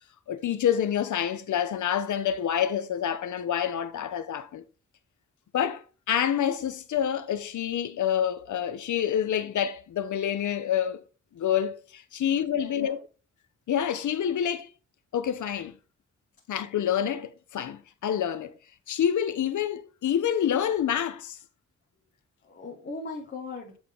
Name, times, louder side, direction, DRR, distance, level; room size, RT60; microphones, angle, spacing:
voice 1, 0.3-4.6 5.5-11.0 11.3-13.0 13.7-14.7 15.1-15.7 16.5-18.6 18.9-21.4, left 9 dB, 75° left, 0.7 m, -27 dB
voice 2, 12.1-13.0 22.4-23.8, left 3 dB, 35° left, 1.2 m, -40 dB
8.7 x 3.7 x 3.6 m
wide cardioid pair, 180°, 30 cm